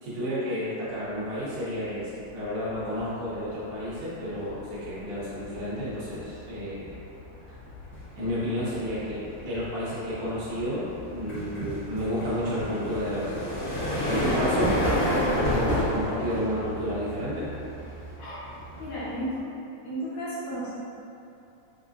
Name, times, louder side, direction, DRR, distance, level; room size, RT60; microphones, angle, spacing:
voice 1, 0.0-7.0 8.2-10.8 11.1-13.4 14.1-17.5, equal, 70° right, -10 dB, 1.4 m, -31 dB
sound 1, 2.0-2.3 2.7-19.4, equal, 55° left, 1.1 m, -31 dB
voice 2, 14.1-14.5 18.2-18.4 18.8-19.4 19.8-20.8, equal, 75° left, -10 dB, 1.7 m, -33 dB
5.4 x 2.3 x 2.5 m, 2.7 s
omnidirectional pair, 4.0 m